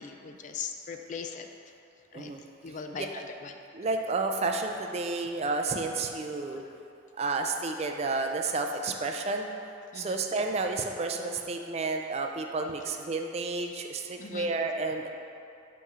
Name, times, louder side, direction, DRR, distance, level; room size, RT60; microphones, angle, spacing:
voice 1, 0.0-1.5 2.1-2.3 2.6-3.5 9.9-10.2 14.2-14.5, left 5 dB, 40° left, 5 dB, 0.3 m, -39 dB
voice 2, 3.7-6.6 7.2-9.5 9.9-15.1, right 3 dB, 35° right, 3 dB, 0.3 m, -31 dB
5.7 x 3.1 x 5.4 m, 2.7 s
head